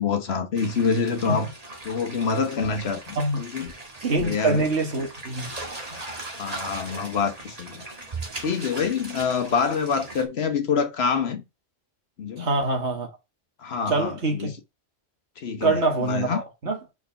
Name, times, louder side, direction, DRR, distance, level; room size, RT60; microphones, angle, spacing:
voice 1, 0.0-1.5 1.8-3.7 4.2-4.7 6.4-7.8 8.4-11.4 12.2-12.5 13.6-14.5 15.4-16.4, left 5 dB, 55° left, 1.1 m, -26 dB
sound 1, 0.6-10.3, right 2 dB, 30° right, 1.6 m, -39 dB
voice 2, 4.0-5.5 12.4-13.1 13.9-14.5 15.6-16.8, right 3 dB, 60° right, 1.9 m, -25 dB
4.7 x 4.6 x 5.7 m
omnidirectional pair, 1.3 m